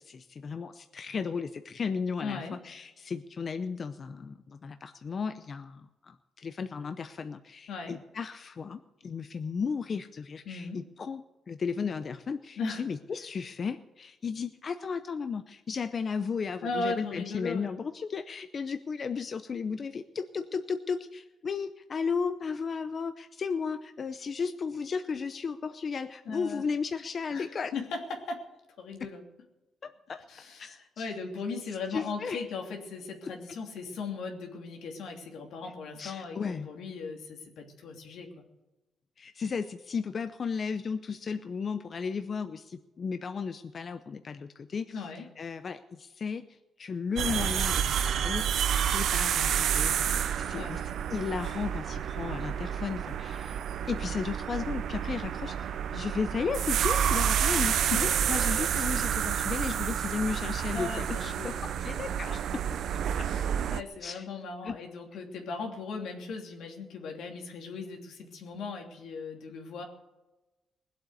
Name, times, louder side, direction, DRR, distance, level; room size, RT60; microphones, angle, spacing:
voice 1, 0.0-27.7 29.8-30.2 30.6-31.1 31.9-32.4 36.0-36.7 39.2-45.0 45.4-50.8 51.1-53.6 53.9-62.6 63.2-63.3 64.0-64.3 64.6-64.8, left 5 dB, 45° left, 9 dB, 0.7 m, -35 dB
voice 2, 2.2-2.6 7.7-8.0 10.4-10.8 12.6-12.8 16.6-17.7 26.2-26.7 27.3-28.4 28.8-29.2 30.3-38.4 44.9-45.3 50.5-50.8 57.5-58.2 60.7-61.6 63.2-69.8, left 4 dB, 85° left, 2 dB, 2.9 m, -38 dB
sound 1, 47.2-63.8, right 9 dB, 75° right, 0.6 m, -29 dB
20.0 x 8.0 x 8.2 m, 1.1 s
cardioid pair, 105°, 0 cm